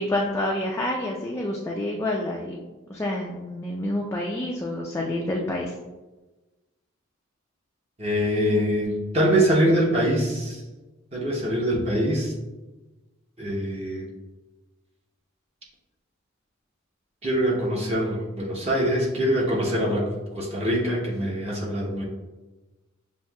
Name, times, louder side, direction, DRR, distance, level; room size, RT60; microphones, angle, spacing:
voice 1, 0.0-2.6 2.9-5.7, left 1 dB, 15° left, -2 dB, 0.3 m, -28 dB
voice 2, 8.0-10.6 11.1-12.3 13.4-14.1 17.2-20.1 20.3-22.0, equal, 30° right, -3 dB, 0.8 m, -24 dB
7.0 x 2.6 x 2.3 m, 1.1 s
head